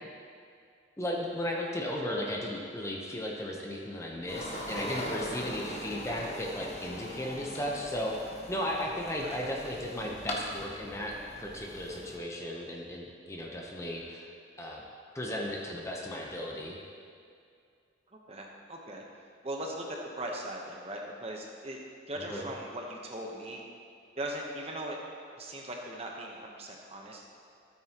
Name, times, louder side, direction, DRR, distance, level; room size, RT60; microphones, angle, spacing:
voice 1, 1.0-8.2 8.5-14.3 14.6-14.8 15.1-16.8 22.2-22.4, left 1 dB, 15° left, -1 dB, 0.9 m, -35 dB
sound 1, 4.3-12.2, equal, 35° left, 1.1 m, -41 dB
voice 2, 18.1-19.0 19.4-21.8 22.1-23.6 24.1-25.0 25.4-27.3, right 1 dB, 30° right, 0 dB, 1.0 m, -39 dB
13.5 x 8.8 x 3.0 m, 2.4 s
head